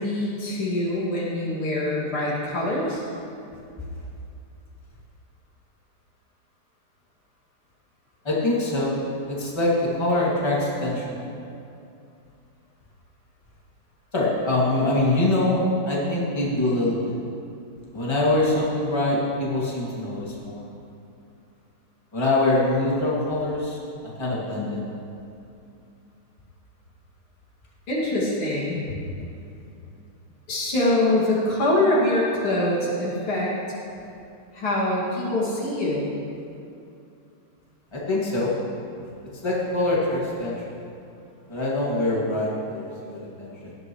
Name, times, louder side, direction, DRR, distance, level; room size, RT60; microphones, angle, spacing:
voice 1, 0.0-3.0 27.9-28.8 29.2-29.3 30.5-33.5 34.5-36.1, left 1 dB, 75° left, -6 dB, 3.2 m, -24 dB
voice 2, 8.2-9.0 9.3-11.2 14.1-17.1 17.9-20.6 22.1-24.9 37.9-38.5 39.4-40.8 41.5-43.7, left 2 dB, 10° left, -6 dB, 2.2 m, -24 dB
17.0 x 12.0 x 3.2 m, 2.6 s
omnidirectional pair, 2.4 m